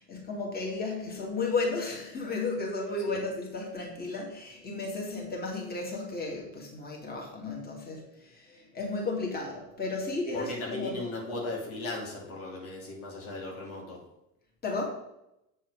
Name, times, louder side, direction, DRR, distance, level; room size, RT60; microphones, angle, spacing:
voice 1, 0.0-11.0 14.6-14.8, left 3 dB, 20° left, -1 dB, 2.4 m, -34 dB
voice 2, 10.3-14.0, left 2 dB, 85° left, -3 dB, 2.8 m, -36 dB
7.5 x 4.6 x 4.8 m, 0.86 s
hypercardioid pair, 90°, 42 cm